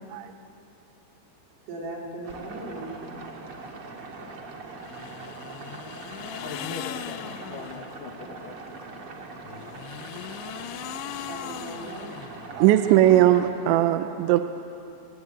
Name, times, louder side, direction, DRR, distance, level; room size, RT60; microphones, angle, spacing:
voice 1, 1.7-3.0 11.2-12.1, right 1 dB, 65° right, -2 dB, 5.8 m, -38 dB
sound 1, 2.2-13.5, right 3 dB, 45° right, 2.0 m, -41 dB
sound 2, 4.8-8.0 9.4-12.8, left 12 dB, 80° left, 3.0 m, -39 dB
voice 2, 6.4-8.6, left 4 dB, 60° left, 3 dB, 2.6 m, -40 dB
voice 3, 12.6-14.4, right 13 dB, 85° right, 8 dB, 3.0 m, -19 dB
27.5 x 19.5 x 8.6 m, 2.8 s
omnidirectional pair, 5.2 m